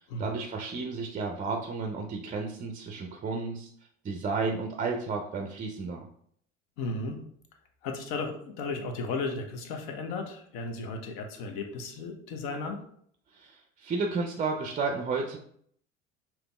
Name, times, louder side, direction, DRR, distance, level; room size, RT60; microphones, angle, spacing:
voice 1, 0.0-3.7 4.0-6.1 13.3-15.4, right 4 dB, 20° right, 3 dB, 0.5 m, -32 dB
voice 2, 6.8-7.2 7.8-12.8, left 3 dB, 60° left, 5 dB, 0.9 m, -35 dB
5.1 x 3.0 x 2.2 m, 0.65 s
hypercardioid pair, 70°, 37 cm